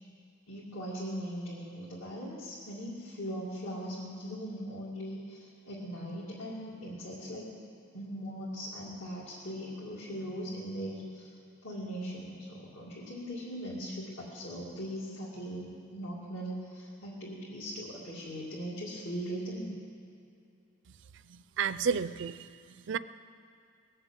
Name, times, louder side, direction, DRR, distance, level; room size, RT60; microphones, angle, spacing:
voice 1, 0.5-7.5 7.9-11.3 11.6-19.7, equal, 75° left, -8 dB, 2.6 m, -40 dB
voice 2, 21.2-23.0, right 6 dB, 60° right, 15 dB, 0.4 m, -32 dB
20.5 x 7.5 x 8.2 m, 2.5 s
head